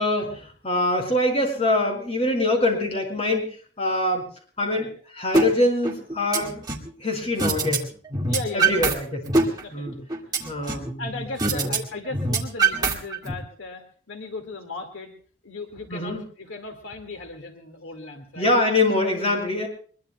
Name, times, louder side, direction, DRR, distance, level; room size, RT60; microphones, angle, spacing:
voice 1, 0.0-4.3 4.6-6.6 7.0-7.9 8.5-9.2 9.7-10.0 10.4-11.1 11.5-11.7 15.9-16.2 18.4-19.7, left 2 dB, 30° left, 2 dB, 5.1 m, -24 dB
sound 1, 5.3-5.5 5.8-6.9 7.4-7.8 8.1-8.9 9.3-10.9 11.4-11.8 12.1-13.3, right 3 dB, 20° right, 2.1 m, -23 dB
voice 2, 8.3-8.9 9.6-10.1 10.5-15.1 15.4-18.5, left 3 dB, 80° left, 4 dB, 2.1 m, -37 dB
23.5 x 22.0 x 2.3 m, 0.43 s
head